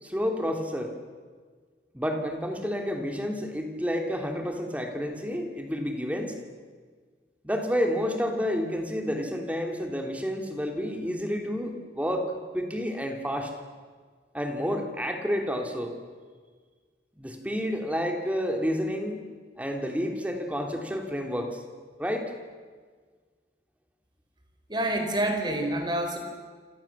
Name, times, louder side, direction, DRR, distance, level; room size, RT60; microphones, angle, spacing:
voice 1, 0.0-0.9 1.9-6.3 7.4-13.5 14.3-16.0 17.2-19.2 19.6-21.6 22.0-22.3, equal, 10° right, 3 dB, 3.0 m, -30 dB
voice 2, 24.7-26.2, right 1 dB, 25° right, 5 dB, 4.3 m, -27 dB
28.0 x 27.5 x 7.4 m, 1.5 s
head